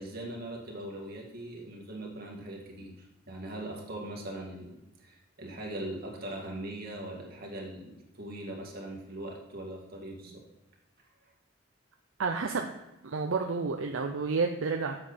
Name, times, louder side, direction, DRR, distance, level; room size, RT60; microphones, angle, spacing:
voice 1, 0.0-10.4 11.2-11.3, right 1 dB, 50° right, -1 dB, 2.1 m, -41 dB
voice 2, 12.2-12.7 13.0-15.0, right 4 dB, 75° right, 4 dB, 0.6 m, -30 dB
7.8 x 7.4 x 4.2 m, 0.99 s
head